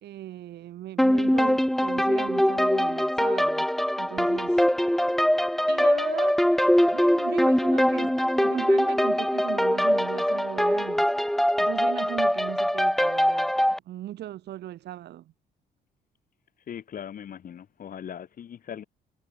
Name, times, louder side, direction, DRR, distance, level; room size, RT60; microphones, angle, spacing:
voice 1, 0.0-3.7 4.0-4.7 5.7-6.4 6.8-11.1 11.6-15.3, right 13 dB, 75° right, 2.5 m, -38 dB
sound 1, 1.0-13.8, equal, ahead, 0.4 m, -23 dB
voice 2, 16.7-18.8, left 9 dB, 55° left, 3.9 m, -39 dB
cardioid pair, 105°, 18 cm